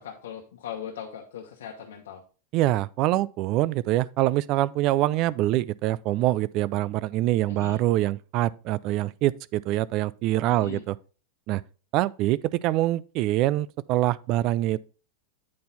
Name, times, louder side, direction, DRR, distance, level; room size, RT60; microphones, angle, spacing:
voice 1, 0.0-2.2 7.5-7.8 10.5-10.8, left 8 dB, 85° left, 1.1 m, -39 dB
voice 2, 2.5-11.0 11.5-11.6 11.9-14.9, right 15 dB, 40° right, 0.3 m, -25 dB
8.5 x 4.4 x 4.0 m
supercardioid pair, 140°, 0 cm